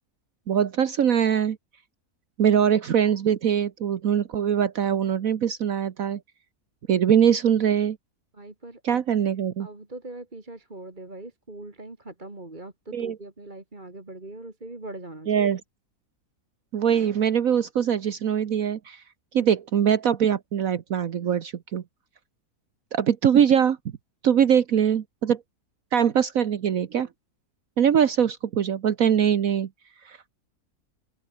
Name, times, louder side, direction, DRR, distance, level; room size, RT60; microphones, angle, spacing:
voice 1, 0.5-1.6 2.4-6.2 6.9-8.0 8.8-9.7 12.9-13.1 15.3-15.6 16.7-19.0 19.3-21.8 22.9-23.8 24.2-25.4 25.9-27.1 27.8-29.7 30.0-30.2, right 8 dB, 65° right, 1.4 m, -22 dB
voice 2, 8.3-9.0 9.6-15.5 19.4-19.5, right 2 dB, 30° right, 2.9 m, -41 dB
open air
omnidirectional pair, 1.6 m